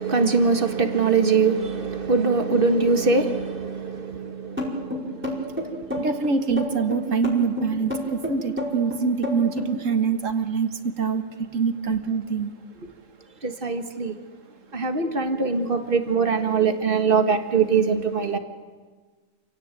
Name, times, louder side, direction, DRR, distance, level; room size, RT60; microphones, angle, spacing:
voice 1, 0.0-5.9 13.4-14.2 14.7-18.4, right 4 dB, 45° right, 1.9 m, -23 dB
sound 1, 4.6-9.7, left 1 dB, 10° right, 5.1 m, -29 dB
voice 2, 6.0-12.5, right 5 dB, 70° right, 1.9 m, -25 dB
28.0 x 17.5 x 9.2 m
omnidirectional pair, 1.4 m